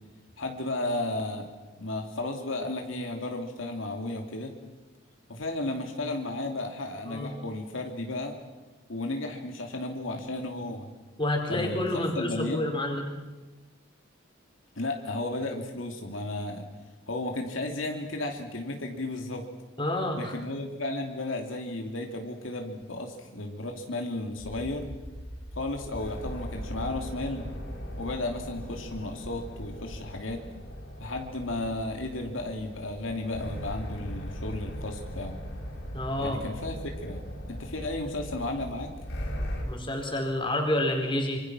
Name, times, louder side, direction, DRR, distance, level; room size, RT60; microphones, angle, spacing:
voice 1, 0.4-1.5 1.8-4.5 5.3-8.4 8.9-10.9 11.5-12.8 14.8-16.7 17.1-19.5 20.2-24.9 25.5-27.5 28.0-30.4 31.0-35.4 36.2-37.2 37.5-38.9, left 2 dB, 75° left, 3 dB, 2.6 m, -34 dB
voice 2, 11.2-13.0 19.8-20.4 35.9-36.4 39.6-41.4, left 1 dB, 25° left, 3 dB, 4.4 m, -29 dB
sound 1, 24.4-39.6, equal, 60° left, 5.9 m, -39 dB
26.0 x 25.5 x 6.2 m, 1.2 s
head